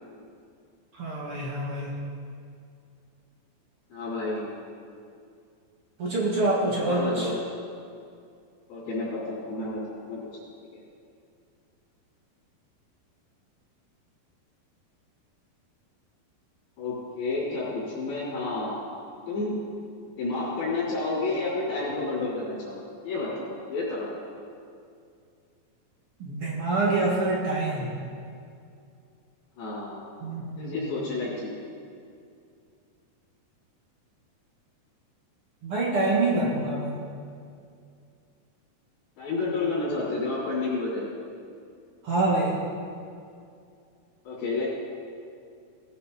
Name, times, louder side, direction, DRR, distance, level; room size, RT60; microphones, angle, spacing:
voice 1, 0.9-1.9 6.0-7.3 26.2-27.9 30.2-30.7 35.6-37.0 42.0-42.6, right 2 dB, 45° right, -4 dB, 2.1 m, -26 dB
voice 2, 3.9-4.5 6.8-7.4 8.7-10.4 16.8-18.7 19.3-19.6 20.2-22.8 23.0-24.2 29.6-30.0 30.6-31.5 39.2-41.1 44.2-44.7, left 3 dB, 85° left, -12 dB, 5.7 m, -30 dB
19.5 x 9.8 x 4.2 m, 2.4 s
omnidirectional pair, 4.2 m